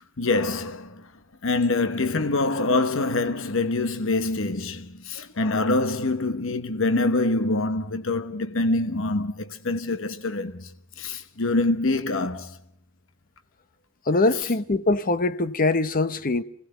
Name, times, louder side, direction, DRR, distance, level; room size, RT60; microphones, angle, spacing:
voice 1, 0.2-1.1 1.4-12.6 14.3-14.5, left 2 dB, 70° left, 1.1 m, -25 dB
voice 2, 14.1-16.4, left 2 dB, 45° left, 0.9 m, -23 dB
27.5 x 18.0 x 8.0 m
head